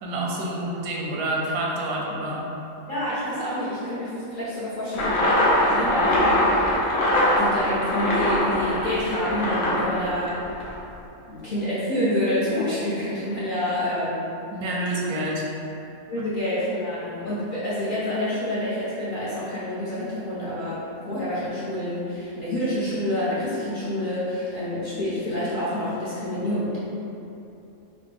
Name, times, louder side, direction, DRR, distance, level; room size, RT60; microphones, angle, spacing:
voice 1, 0.0-2.5 14.5-15.4, right 1 dB, 85° right, -2 dB, 1.1 m, -28 dB
voice 2, 2.9-6.8 7.4-10.3 11.3-14.3 16.1-20.8 21.1-26.8, left 1 dB, 45° left, -11 dB, 0.7 m, -28 dB
sound 1, 4.9-10.8, left 1 dB, 70° left, 1.1 m, -22 dB
4.1 x 2.1 x 3.3 m, 2.8 s
omnidirectional pair, 1.6 m